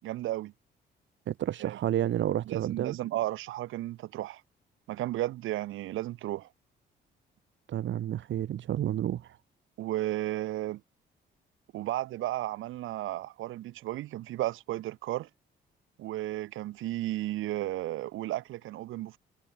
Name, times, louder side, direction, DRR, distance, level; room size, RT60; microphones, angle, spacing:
voice 1, 0.0-0.5 1.6-1.8 2.5-4.4 4.9-6.5 9.8-10.8 11.7-15.3 16.0-19.2, right 15 dB, 90° right, 4.0 m, -34 dB
voice 2, 1.3-3.0 7.7-9.4, right 11 dB, 70° right, 3.0 m, -30 dB
cardioid pair, 90°, 20 cm